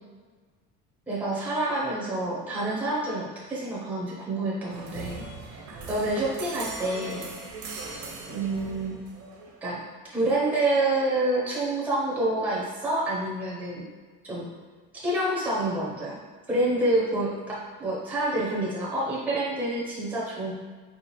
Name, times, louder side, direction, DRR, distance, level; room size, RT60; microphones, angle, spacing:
voice 1, 1.1-5.6 5.9-7.3 8.3-9.0 9.6-9.8 10.1-13.9 14.2-14.5 14.9-16.2 16.5-20.5, right 1 dB, 5° right, -6 dB, 0.6 m, -28 dB
sound 1, 4.7-9.6, right 3 dB, 70° right, 0.7 m, -39 dB
4.2 x 2.4 x 3.0 m, 1.4 s
cardioid pair, 175°, 29 cm